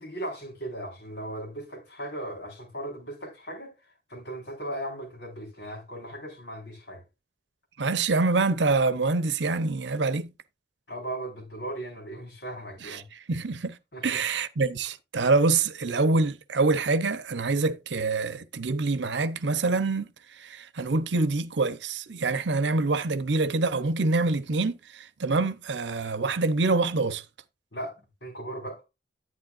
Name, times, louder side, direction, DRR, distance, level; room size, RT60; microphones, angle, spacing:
voice 1, 0.0-3.7 4.1-7.0 10.9-13.1 13.9-14.2 27.7-28.8, right 1 dB, 80° left, 4.2 m, -37 dB
voice 2, 7.8-10.3 12.8-13.0 13.3-13.8 14.0-20.1 20.4-27.2, right 3 dB, 75° right, 0.8 m, -25 dB
10.5 x 9.3 x 2.5 m
head